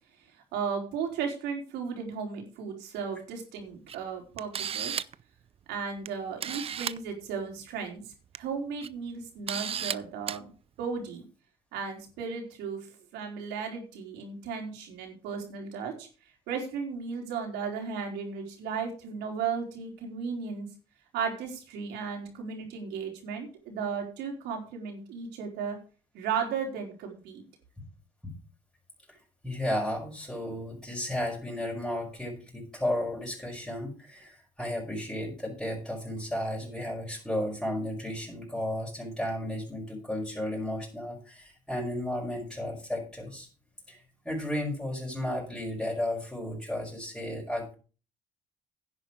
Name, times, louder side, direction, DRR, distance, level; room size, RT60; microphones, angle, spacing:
voice 1, 0.5-5.0 5.7-8.0 8.4-10.5 10.8-11.2 11.7-12.9 13.1-16.1 16.5-20.7 21.1-25.8 26.1-27.4, right 6 dB, 85° right, 2 dB, 4.2 m, -35 dB
Camera, 3.9-4.0 4.4-5.2 6.0-6.1 6.4-7.0 8.1-8.4 8.8-8.9 9.5-9.9 10.3-10.4, right 8 dB, 35° right, 0.5 m, -33 dB
voice 2, 29.4-43.5 43.9-47.7, left 1 dB, 5° left, -5 dB, 5.5 m, -33 dB
10.5 x 9.1 x 5.0 m, 0.36 s
cardioid pair, 110°, 17 cm